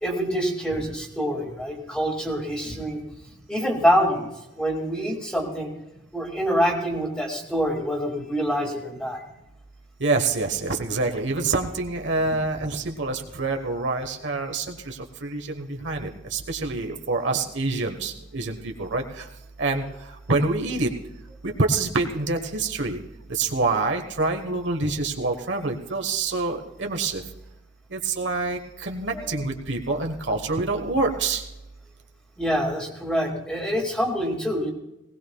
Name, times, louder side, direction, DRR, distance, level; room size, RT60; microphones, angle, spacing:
voice 1, 0.0-3.0 3.5-4.3 4.6-5.7 6.1-9.2 29.1-29.3 32.4-34.7, equal, 5° left, 0 dB, 2.1 m, -25 dB
voice 2, 10.0-19.3 19.6-19.8 20.3-20.9 21.4-23.0 23.3-27.2 27.9-31.4, right 3 dB, 65° right, 4 dB, 1.2 m, -26 dB
20.0 x 17.5 x 2.3 m, 0.95 s
head